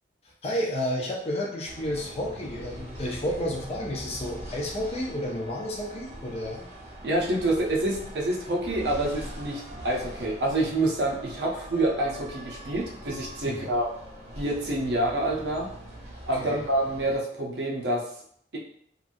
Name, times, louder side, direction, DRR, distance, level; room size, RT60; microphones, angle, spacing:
voice 1, 0.4-6.6 13.5-13.7 16.4-16.6, left 1 dB, 35° left, -1 dB, 0.6 m, -31 dB
sound 1, 1.6-17.2, right 1 dB, 40° right, 0.8 m, -42 dB
voice 2, 7.0-13.9 14.4-15.7 16.3-18.0 18.5-18.6, right 1 dB, 70° right, -2 dB, 0.7 m, -27 dB
2.9 x 2.5 x 2.5 m, 0.64 s
head